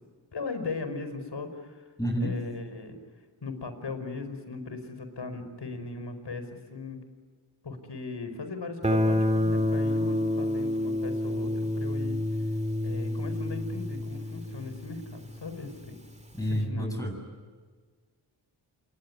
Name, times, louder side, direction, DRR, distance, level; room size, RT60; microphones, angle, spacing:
voice 1, 0.3-1.8 2.2-3.0 3.4-7.0 7.6-12.2 12.8-16.0 16.4-17.0, left 3 dB, 55° left, 9 dB, 5.3 m, -38 dB
voice 2, 2.0-2.3 16.4-17.1, equal, 5° left, 2 dB, 7.6 m, -29 dB
Guitar, 8.8-15.6, left 1 dB, 15° right, 1.8 m, -28 dB
27.5 x 22.0 x 9.8 m, 1.5 s
cardioid pair, 45°, 49 cm